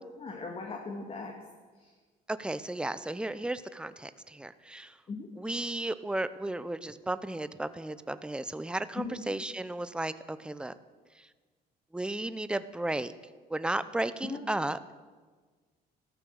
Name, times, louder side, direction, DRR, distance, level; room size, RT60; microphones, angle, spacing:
voice 1, 0.2-1.3 1.8-1.9 5.1-5.3 9.0-9.2 14.2-14.4, left 4 dB, 35° left, 2 dB, 2.0 m, -38 dB
voice 2, 2.3-4.9 5.4-10.7 11.9-13.1 13.5-14.8, right 2 dB, 5° right, 13 dB, 0.6 m, -34 dB
15.0 x 13.0 x 6.5 m, 1.4 s
cardioid pair, 110°, 17 cm